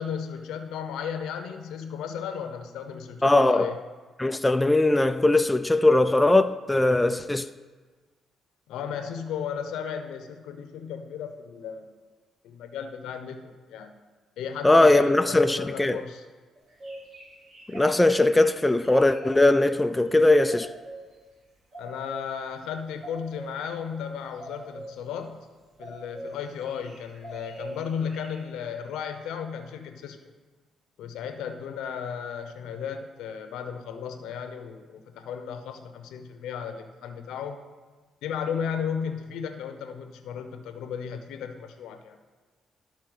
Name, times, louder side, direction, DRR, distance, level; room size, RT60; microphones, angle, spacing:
voice 1, 0.0-3.8 8.7-11.9 12.4-14.0 14.4-16.2 21.8-25.5 25.8-30.2 31.0-37.6 38.2-42.2, left 7 dB, 85° left, 0.8 m, -35 dB
voice 2, 3.2-3.7 4.2-7.5 14.6-16.0 17.7-20.7, left 2 dB, 10° left, 0.3 m, -20 dB
sound 1, 16.6-19.7 20.5-21.1 21.7-22.3 23.0-23.6 24.3-25.0 25.8-26.3 26.6-28.4, right 1 dB, 50° right, 3.1 m, -42 dB
12.0 x 4.3 x 6.2 m
cardioid pair, 90°, 0 cm